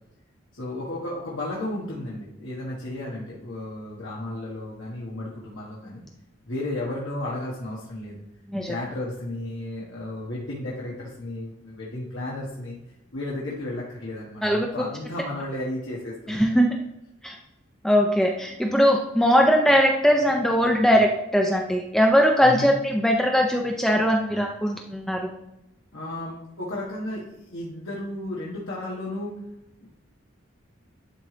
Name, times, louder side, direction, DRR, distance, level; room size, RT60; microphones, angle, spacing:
voice 1, 0.5-6.0 6.4-8.2 8.7-12.8 13.1-16.4 22.4-22.7 25.9-29.3 29.8-29.9, left 1 dB, 65° left, -6 dB, 1.4 m, -33 dB
voice 2, 16.3-16.7 17.2-17.4 17.8-25.3, equal, ahead, 1 dB, 0.4 m, -20 dB
11.0 x 3.8 x 3.3 m, 0.90 s
head